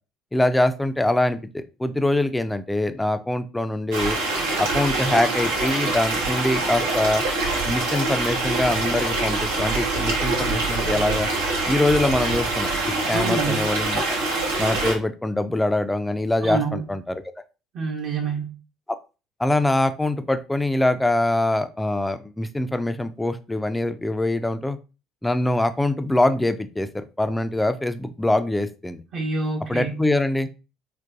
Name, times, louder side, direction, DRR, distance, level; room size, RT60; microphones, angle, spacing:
voice 1, 0.3-4.2 4.6-7.2 7.7-11.3 11.7-12.7 13.1-14.0 14.6-17.2 19.4-24.8 25.2-29.0 29.7-30.5, left 1 dB, 10° left, 0.4 m, -23 dB
sound 1, 3.9-15.0, right 3 dB, 80° right, 0.7 m, -25 dB
voice 2, 13.1-13.7 16.4-16.9 17.7-18.6 29.1-30.0, right 3 dB, 55° right, 0.9 m, -27 dB
3.9 x 2.2 x 2.4 m
hypercardioid pair, 60°, 0 cm